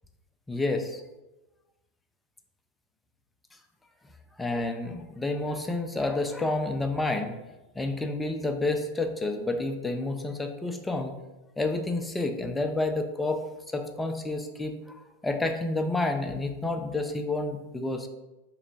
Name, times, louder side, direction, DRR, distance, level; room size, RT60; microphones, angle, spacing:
voice 1, 0.5-1.0 4.4-7.4 7.8-11.1 11.6-13.4 13.7-18.1, left 2 dB, 10° left, 5 dB, 0.4 m, -29 dB
3.1 x 2.9 x 3.9 m, 1.0 s
figure-of-eight pair, 90°, 0 cm